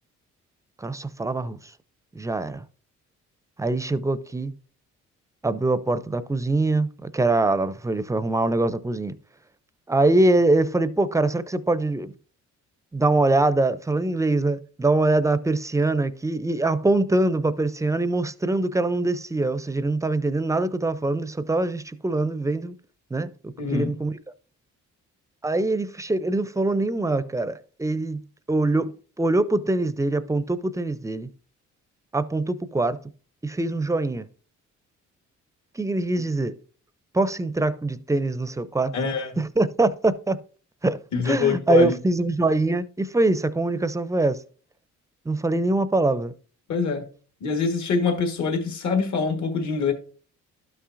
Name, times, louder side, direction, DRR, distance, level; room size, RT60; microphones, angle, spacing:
voice 1, 0.8-1.6 2.1-2.6 3.6-4.5 5.4-9.2 9.9-12.1 12.9-22.7 23.1-24.1 25.4-31.3 32.1-33.0 33.4-34.3 35.8-36.6 37.1-38.9 39.4-40.4 40.8-41.0 41.3-44.4 45.3-46.3, right 2 dB, 10° right, 0.4 m, -23 dB
voice 2, 23.6-23.9 38.9-39.4 41.1-42.0 46.7-47.1 47.4-49.9, left 5 dB, 65° left, 1.5 m, -24 dB
12.0 x 5.7 x 2.5 m
cardioid pair, 90°, 30 cm